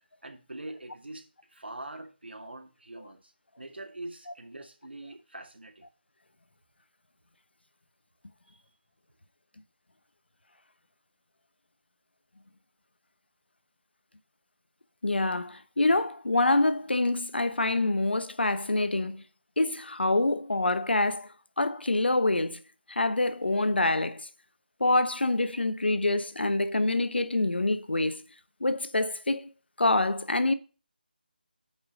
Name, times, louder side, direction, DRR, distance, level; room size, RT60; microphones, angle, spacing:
voice 1, 0.2-3.3 3.6-5.8 8.5-8.6, right 2 dB, 90° right, 2.3 m, -43 dB
voice 2, 15.0-19.2 19.6-21.3 21.6-22.6 22.9-24.3 24.8-28.2 28.6-29.5 29.8-30.5, left 2 dB, 90° left, 1.1 m, -26 dB
8.7 x 5.6 x 5.1 m
figure-of-eight pair, 165°, 6 cm